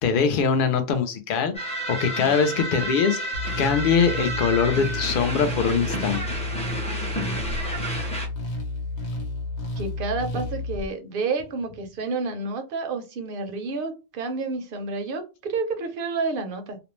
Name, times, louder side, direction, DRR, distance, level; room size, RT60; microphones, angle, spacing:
voice 1, 0.0-3.2 3.6-6.2, left 6 dB, 60° left, 0.7 m, -22 dB
sound 1, 1.5-8.3, right 1 dB, 10° left, 0.5 m, -31 dB
sound 2, 3.3-10.9, left 2 dB, 85° left, 1.0 m, -31 dB
voice 2, 9.8-16.8, right 3 dB, 60° right, 0.7 m, -29 dB
2.5 x 2.0 x 3.0 m
omnidirectional pair, 1.1 m